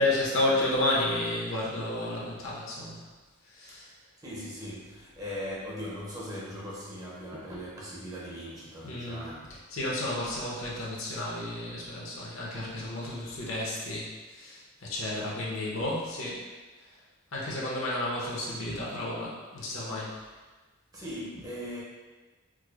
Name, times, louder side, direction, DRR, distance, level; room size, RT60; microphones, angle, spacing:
voice 1, 0.0-3.1 3.5-3.9 8.8-9.2 9.7-16.5 17.3-20.2, left 1 dB, 70° left, -5 dB, 0.8 m, -31 dB
voice 2, 4.2-9.5 18.7-18.8 20.9-21.8, equal, 15° right, -6 dB, 0.6 m, -39 dB
4.7 x 2.0 x 2.4 m, 1.3 s
head